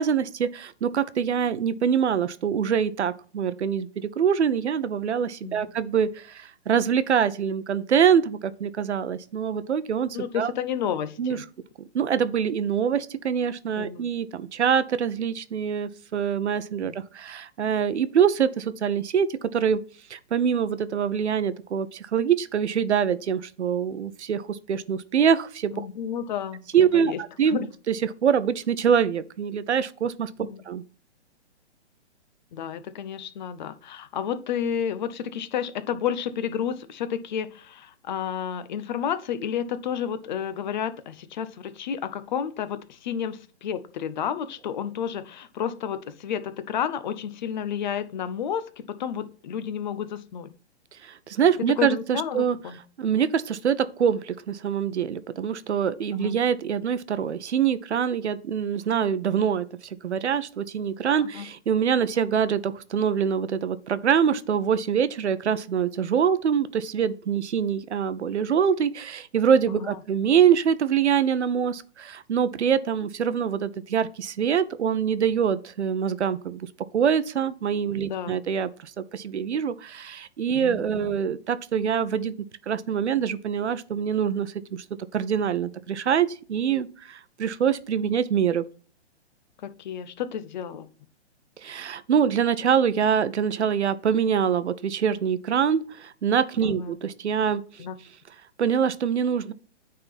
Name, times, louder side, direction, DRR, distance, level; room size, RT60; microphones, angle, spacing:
voice 1, 0.0-10.5 11.2-11.4 11.9-19.8 20.1-25.9 26.7-30.8 51.0-52.6 53.0-59.7 60.0-76.7 76.9-82.3 82.7-84.8 85.1-88.6 91.6-97.6 98.6-99.5, right 7 dB, 75° right, 0.8 m, -24 dB
voice 2, 10.1-11.4 13.8-14.0 16.8-17.0 25.7-26.6 26.9-27.7 30.4-30.6 32.5-50.5 51.8-52.8 56.1-56.4 61.2-61.5 69.7-70.0 78.0-78.4 80.5-81.2 89.6-90.9 96.6-97.0 97.8-97.9, left 8 dB, 40° left, 0.7 m, -31 dB
9.2 x 3.8 x 4.2 m
hypercardioid pair, 135°, 34 cm